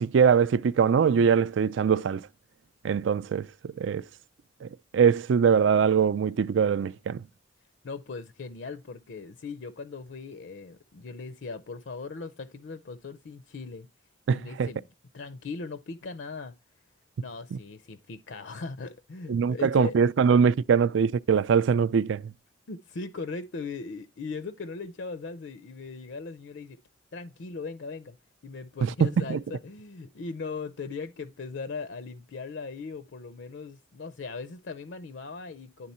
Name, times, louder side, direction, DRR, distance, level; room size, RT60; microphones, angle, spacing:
voice 1, 0.0-2.3 2.8-4.0 4.6-4.7 4.9-7.2 14.3-14.7 19.3-22.3 28.8-29.4, right 6 dB, 75° right, 0.4 m, -22 dB
voice 2, 7.8-13.9 14.3-14.8 15.1-16.5 17.2-20.0 22.7-26.8 27.1-28.2 28.4-35.9, left 4 dB, 70° left, 0.5 m, -39 dB
10.5 x 3.7 x 4.2 m
head